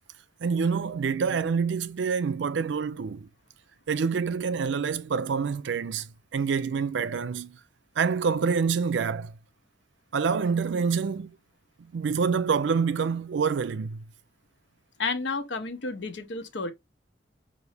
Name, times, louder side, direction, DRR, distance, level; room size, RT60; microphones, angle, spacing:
voice 1, 0.4-3.3 3.9-6.0 6.3-7.6 8.0-9.3 10.1-11.3 11.9-14.0, right 5 dB, 80° right, 0.4 m, -26 dB
voice 2, 15.0-16.7, left 4 dB, 80° left, 0.8 m, -31 dB
5.2 x 2.6 x 3.2 m
head